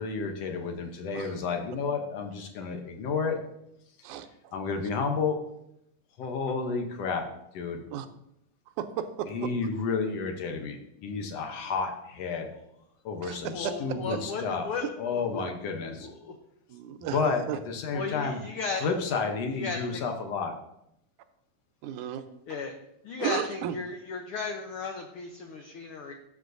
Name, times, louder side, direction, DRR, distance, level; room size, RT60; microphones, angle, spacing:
voice 1, 0.0-3.4 4.5-5.4 6.2-7.2 7.5-7.8 9.3-12.5 13.1-14.7 15.0-16.1 17.1-18.4 18.8-20.6, left 5 dB, 70° left, 4 dB, 1.8 m, -31 dB
voice 2, 4.0-4.5 6.2-6.3 7.9-8.1 8.7-9.5 13.2-14.0 14.8-14.9 15.4-15.5 16.7-17.6 21.8-22.2 22.5-22.6 23.2-23.8, right 9 dB, 85° right, 10 dB, 2.1 m, -34 dB
voice 3, 13.4-14.9 15.1-15.5 16.0-16.3 17.9-18.9 19.5-20.1 22.5-22.7 23.0-26.1, left 4 dB, 90° left, 4 dB, 1.2 m, -35 dB
13.0 x 7.1 x 2.6 m, 0.79 s
omnidirectional pair, 3.4 m